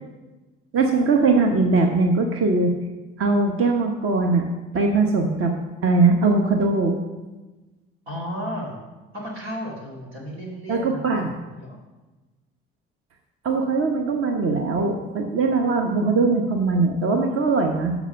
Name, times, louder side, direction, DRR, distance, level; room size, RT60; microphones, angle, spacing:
voice 1, 0.7-2.7 3.2-4.5 4.7-5.5 5.8-7.0 10.7-11.3 13.4-17.9, right 3 dB, 50° right, 3 dB, 1.0 m, -20 dB
voice 2, 8.1-8.8 9.1-11.8, equal, 90° right, -4 dB, 2.3 m, -34 dB
7.2 x 6.0 x 5.6 m, 1.2 s
hypercardioid pair, 55°, 29 cm